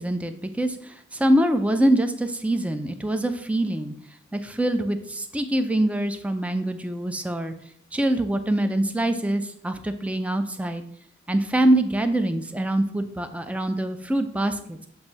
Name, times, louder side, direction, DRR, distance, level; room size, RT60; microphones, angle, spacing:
voice 1, 0.0-3.9 4.3-7.5 7.9-10.8 11.3-14.8, right 1 dB, 5° right, 8 dB, 0.4 m, -24 dB
7.8 x 2.6 x 5.3 m, 0.68 s
head